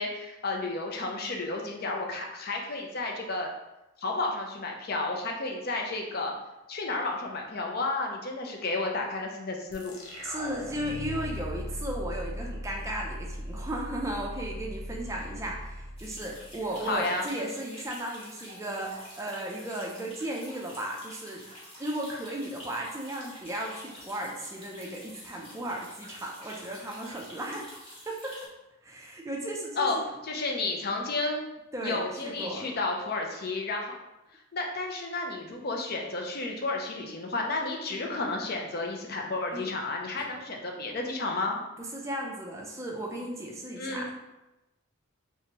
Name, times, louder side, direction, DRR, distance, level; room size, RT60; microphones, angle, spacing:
voice 1, 0.0-3.5 4.0-6.3 6.7-9.9 16.9-17.3 29.8-30.0 30.2-31.4 31.8-33.9 34.5-41.6 43.8-44.1, left 3 dB, 45° left, 1 dB, 0.5 m, -32 dB
sound 1, 9.7-17.0, equal, 85° left, 0.8 m, -39 dB
voice 2, 10.2-21.4 21.8-27.7 28.1-28.4 28.8-30.0 31.7-32.7 37.9-38.3 39.5-39.7 41.9-44.1, right 1 dB, 15° right, -1 dB, 0.4 m, -35 dB
sound 2, 16.0-28.5, equal, 25° left, 1.0 m, -48 dB
3.3 x 3.0 x 2.9 m, 0.97 s
head